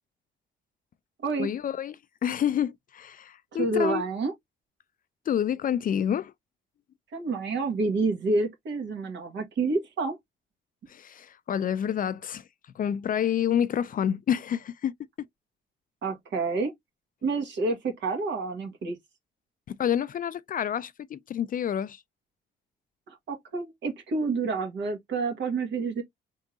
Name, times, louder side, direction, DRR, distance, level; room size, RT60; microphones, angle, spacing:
voice 1, 1.4-4.0 5.3-6.3 10.9-12.5 12.8-14.9 19.7-22.0, left 9 dB, 45° left, 0.4 m, -28 dB
voice 2, 3.6-4.3 7.1-10.2 16.0-16.7 17.2-19.0 23.1-26.0, right 3 dB, 65° right, 1.7 m, -28 dB
3.6 x 3.6 x 2.6 m
cardioid pair, 90°, 20 cm